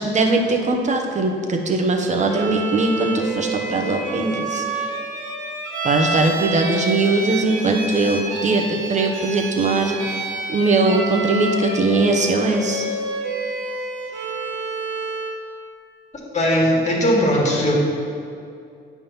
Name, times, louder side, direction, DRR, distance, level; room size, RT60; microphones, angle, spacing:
voice 1, 0.0-4.9 5.8-10.2 10.5-12.8, right 2 dB, 35° right, 3 dB, 0.9 m, -20 dB
Bowed string instrument, 2.3-15.5, right 2 dB, 75° right, 1.1 m, -28 dB
voice 2, 16.3-17.7, equal, 35° left, -2 dB, 1.8 m, -18 dB
8.7 x 3.6 x 5.7 m, 2.5 s
cardioid pair, 90°, 20 cm